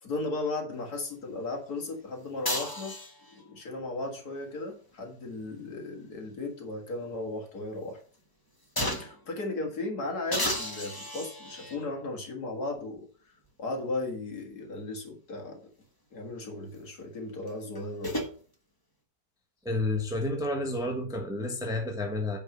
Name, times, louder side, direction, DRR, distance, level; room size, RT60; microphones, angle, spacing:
voice 1, 0.0-3.0 3.3-8.0 9.0-13.1 13.6-15.6 16.1-18.3, left 2 dB, 60° left, 2.2 m, -36 dB
sound 1, 2.4-3.4 5.2-6.7 7.1-7.2 8.8-9.3 10.3-11.9 12.8-12.9 17.5-18.3, left 1 dB, 15° left, 1.1 m, -34 dB
voice 2, 19.6-22.4, left 2 dB, ahead, 1.1 m, -30 dB
9.1 x 4.5 x 5.3 m
omnidirectional pair, 1.9 m